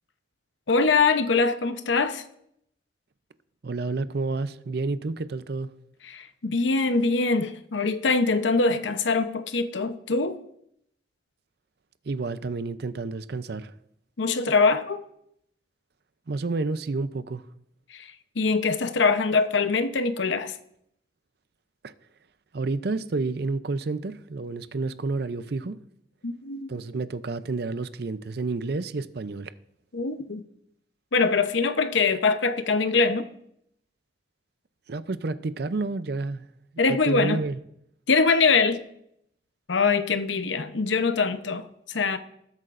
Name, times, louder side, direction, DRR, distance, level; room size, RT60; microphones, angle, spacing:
voice 1, 0.7-2.2 6.1-10.4 14.2-15.0 17.9-20.6 26.2-26.7 29.9-30.4 31.1-33.2 36.8-37.4 38.1-38.8 39.7-42.2, left 4 dB, 80° left, 0.8 m, -23 dB
voice 2, 3.6-5.7 12.0-13.8 16.3-17.5 21.8-21.9 22.5-25.8 26.7-29.5 34.9-36.5 36.9-37.6, right 3 dB, 55° right, 0.5 m, -30 dB
20.0 x 8.2 x 2.5 m
head